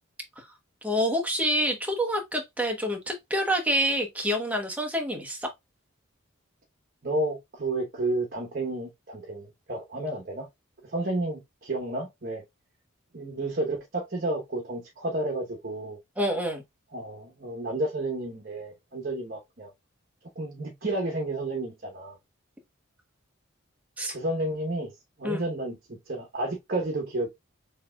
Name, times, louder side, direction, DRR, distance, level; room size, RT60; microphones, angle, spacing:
voice 1, 0.8-5.5 16.2-16.6 24.0-24.2 25.2-25.5, equal, 5° right, 0.9 m, -27 dB
voice 2, 7.0-10.5 10.8-12.4 13.1-16.0 16.9-19.7 20.4-22.2 24.1-24.9 25.2-27.3, right 2 dB, 45° right, 1.0 m, -31 dB
6.5 x 2.9 x 2.3 m
head